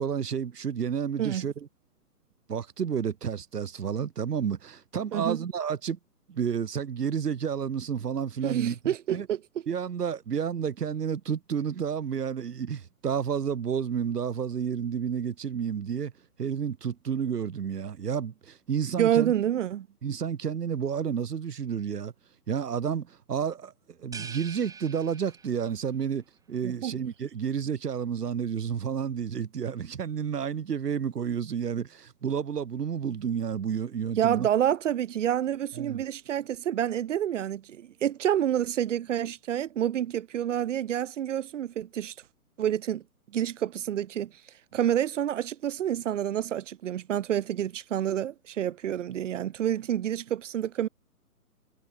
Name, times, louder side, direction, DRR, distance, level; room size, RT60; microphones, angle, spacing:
voice 1, 0.0-1.7 2.5-6.0 6.3-9.3 9.7-16.1 16.4-19.3 20.0-22.1 22.5-23.7 24.0-34.5 35.7-36.0, right 7 dB, 85° right, 1.1 m, -30 dB
voice 2, 8.4-9.4 19.0-19.9 26.6-27.0 34.2-42.1 42.6-43.0 43.3-44.3 44.7-50.9, right 10 dB, 50° right, 1.8 m, -28 dB
sound 1, 24.1-25.8, right 5 dB, 5° right, 2.5 m, -44 dB
hypercardioid pair, 135°, 46 cm